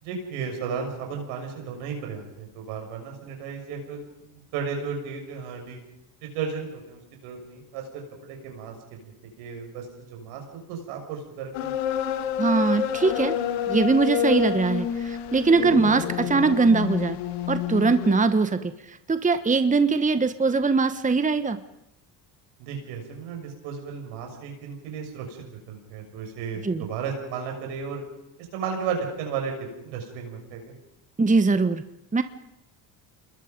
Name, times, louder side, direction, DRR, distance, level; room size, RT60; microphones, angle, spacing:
voice 1, 0.0-5.8 6.2-11.7 22.6-28.0 28.5-29.6 29.8-30.8, right 6 dB, 85° right, 2 dB, 6.4 m, -34 dB
sound 1, 11.5-18.2, left 9 dB, 85° left, 1.9 m, -28 dB
voice 2, 12.4-13.3 13.7-17.2 17.5-21.6 26.6-26.9 31.2-31.8 32.1-32.2, right 4 dB, 15° right, 11 dB, 1.2 m, -22 dB
28.0 x 21.5 x 5.3 m, 0.87 s
supercardioid pair, 75°, 48 cm